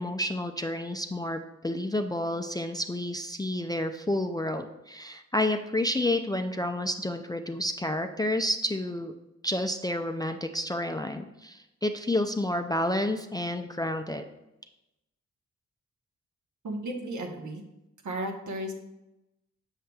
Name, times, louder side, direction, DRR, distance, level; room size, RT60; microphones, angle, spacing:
voice 1, 0.0-9.1 9.4-14.2, left 1 dB, 15° left, 6 dB, 0.3 m, -30 dB
voice 2, 16.6-17.6 18.0-18.7, right 1 dB, 70° right, 3 dB, 1.0 m, -34 dB
6.5 x 6.4 x 2.3 m, 0.93 s
cardioid pair, 65°, 31 cm